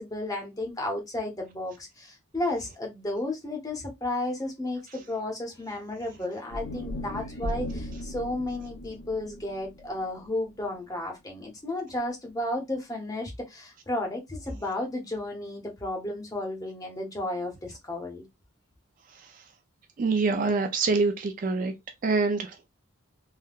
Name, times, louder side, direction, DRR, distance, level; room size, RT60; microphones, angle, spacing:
voice 1, 0.0-18.2, left 1 dB, 15° left, 0.7 m, -33 dB
sound 1, 6.5-10.7, left 1 dB, 65° left, 0.7 m, -37 dB
voice 2, 20.0-21.7 22.0-22.5, right 4 dB, 40° right, 0.3 m, -25 dB
3.4 x 2.1 x 2.3 m
head